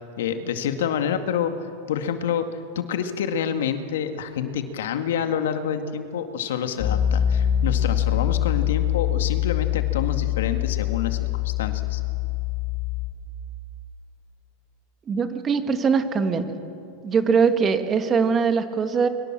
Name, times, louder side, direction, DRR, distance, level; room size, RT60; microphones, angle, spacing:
voice 1, 0.2-12.0, left 8 dB, 80° left, 7 dB, 2.1 m, -28 dB
Piano, 6.8-13.1, left 11 dB, 45° left, 6.4 m, -24 dB
voice 2, 15.1-16.5 17.0-19.1, right 5 dB, 25° right, 8 dB, 1.8 m, -21 dB
24.5 x 23.5 x 7.6 m, 2.6 s
supercardioid pair, 135°, 0 cm